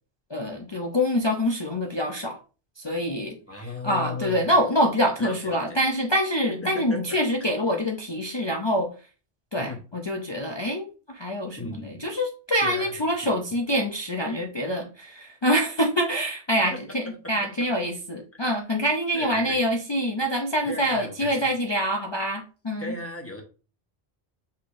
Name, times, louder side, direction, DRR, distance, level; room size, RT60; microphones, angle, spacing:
voice 1, 0.3-2.4 2.8-8.9 9.5-22.9, equal, 35° left, 1 dB, 0.5 m, -26 dB
voice 2, 3.5-4.5 5.2-5.8 6.5-7.2 9.6-9.8 11.6-12.1 12.6-12.9 13.2-13.3 16.7-16.8 17.1-17.3 18.4-18.5 19.1-19.6 20.7-21.5 22.8-23.4, left 2 dB, 15° left, 2 dB, 0.9 m, -36 dB
5.5 x 3.3 x 2.5 m, 0.34 s
omnidirectional pair, 1.1 m